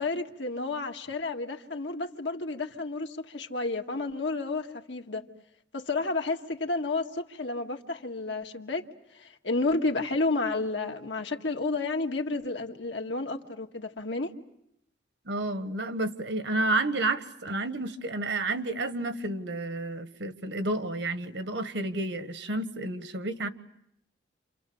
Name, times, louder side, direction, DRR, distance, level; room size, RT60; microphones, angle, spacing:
voice 1, 0.0-5.2 5.7-14.3, left 3 dB, 75° left, 3 dB, 1.9 m, -31 dB
voice 2, 15.2-23.5, right 2 dB, 75° right, 10 dB, 1.5 m, -30 dB
28.5 x 28.0 x 7.1 m, 0.75 s
head